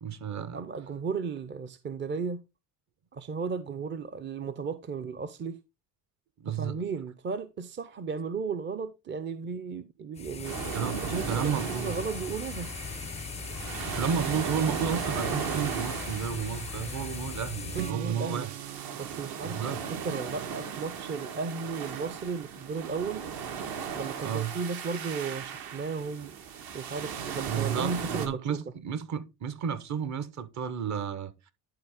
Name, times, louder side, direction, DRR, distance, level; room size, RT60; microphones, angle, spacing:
voice 1, 0.0-0.6 6.4-6.8 10.7-11.0 11.2-11.9 13.9-18.5 19.4-19.8 24.2-24.5 27.4-31.3, right 7 dB, 45° right, 1.0 m, -32 dB
voice 2, 0.5-2.4 3.1-5.6 6.5-10.6 11.0-12.7 17.7-18.5 19.0-19.7 20.0-23.3 23.9-26.3 26.7-28.6, right 5 dB, 30° right, 0.6 m, -35 dB
sound 1, 10.2-17.9, left 5 dB, 20° left, 0.3 m, -39 dB
sound 2, 10.4-28.3, right 7 dB, 65° right, 1.6 m, -37 dB
Strum, 17.7-21.8, right 15 dB, 85° right, 0.6 m, -43 dB
11.0 x 4.2 x 3.6 m
cardioid pair, 125°, 39 cm